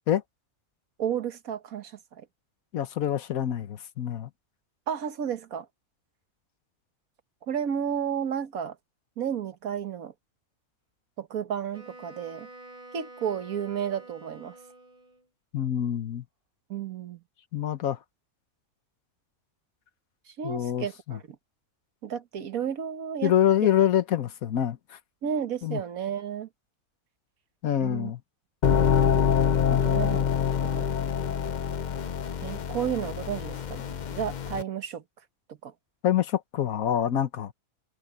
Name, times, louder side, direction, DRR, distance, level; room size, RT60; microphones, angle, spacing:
voice 1, 1.0-2.3 4.9-5.7 7.4-8.8 9.2-10.1 11.2-12.5 12.9-14.6 16.7-17.2 20.3-21.4 22.0-23.3 25.2-26.5 27.8-28.1 29.7-30.3 30.6-30.9 32.4-33.8 34.1-35.0 35.6-35.7, right 8 dB, 75° right, 1.6 m, -32 dB
voice 2, 2.7-4.3 15.5-16.2 17.5-18.0 20.4-21.2 23.2-25.0 25.6-25.8 27.6-28.2 36.0-37.5, left 10 dB, 75° left, 1.4 m, -26 dB
Wind instrument woodwind instrument, 11.7-15.3, right 2 dB, 25° right, 4.4 m, -48 dB
sound 1, 28.6-34.6, left 8 dB, 50° left, 0.5 m, -25 dB
omnidirectional pair, 1.5 m